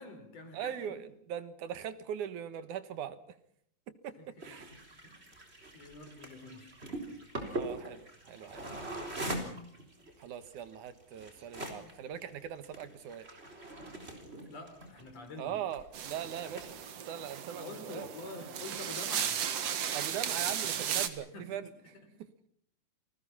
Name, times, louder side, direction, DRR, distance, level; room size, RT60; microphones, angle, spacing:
voice 1, 0.0-1.0 4.2-4.6 5.0-5.3 5.7-6.7 14.5-15.6 17.5-19.5 21.3-21.7, left 2 dB, 55° left, 5 dB, 5.7 m, -47 dB
voice 2, 0.5-3.2 3.9-4.8 7.5-8.9 10.2-13.4 15.4-16.8 17.1-18.1 19.9-21.7 22.2-22.5, right 9 dB, 90° right, 12 dB, 2.9 m, -41 dB
sound 1, 4.4-16.0 16.3-16.9, right 1 dB, 20° right, 4.2 m, -42 dB
sound 2, 15.9-21.1, right 9 dB, 60° right, 2.5 m, -35 dB
29.0 x 20.0 x 5.7 m, 0.67 s
omnidirectional pair, 3.4 m